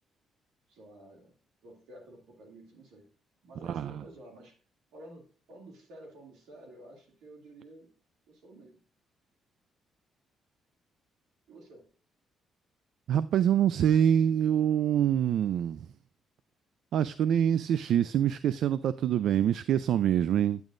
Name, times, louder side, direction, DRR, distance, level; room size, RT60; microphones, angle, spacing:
voice 1, 0.7-1.4 1.6-3.0 3.4-4.6 4.9-7.9 8.3-8.8 11.5-11.9, right 1 dB, 90° right, 2.4 m, -51 dB
voice 2, 3.6-4.0 13.1-15.9 16.9-20.6, right 9 dB, 75° right, 0.3 m, -25 dB
9.3 x 9.0 x 2.5 m
cardioid pair, 90°, 0 cm